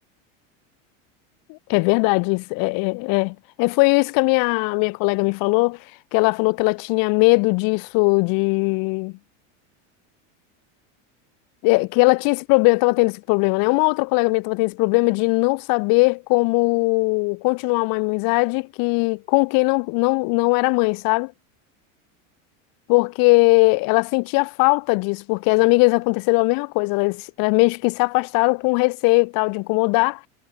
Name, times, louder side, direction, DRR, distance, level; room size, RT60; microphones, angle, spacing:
voice 1, 1.5-5.8 6.1-9.1 11.6-21.3 22.9-30.3, left 31 dB, 60° left, 6.2 m, -20 dB
supercardioid pair, 120°, 38 cm